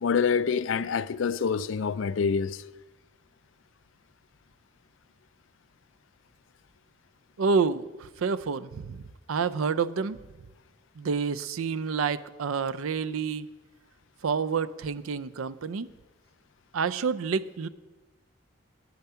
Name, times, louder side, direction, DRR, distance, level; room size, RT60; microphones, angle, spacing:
voice 1, 0.0-2.6, left 6 dB, 70° left, 0.4 m, -26 dB
voice 2, 7.4-10.2 11.0-13.5 14.2-15.9 16.7-17.7, right 5 dB, 85° right, 0.5 m, -28 dB
10.5 x 9.4 x 5.6 m
head